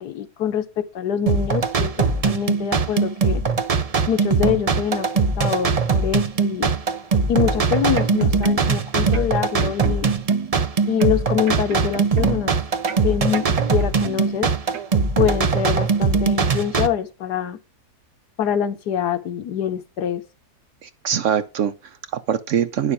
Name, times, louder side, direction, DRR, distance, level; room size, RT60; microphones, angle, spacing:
voice 1, 0.0-3.4 4.1-5.1 5.4-6.7 7.3-10.1 10.9-12.5 13.0-14.5 15.2-17.6 18.4-20.2, left 9 dB, 85° left, 1.6 m, -24 dB
sound 1, 1.3-16.9, right 5 dB, 40° right, 0.5 m, -21 dB
sound 2, 7.5-8.8 9.1-10.7 11.0-12.5 12.9-14.4 14.7-14.9, right 7 dB, 90° right, 1.4 m, -35 dB
voice 2, 20.8-22.9, right 8 dB, 65° right, 0.8 m, -23 dB
9.9 x 6.9 x 4.8 m
omnidirectional pair, 1.7 m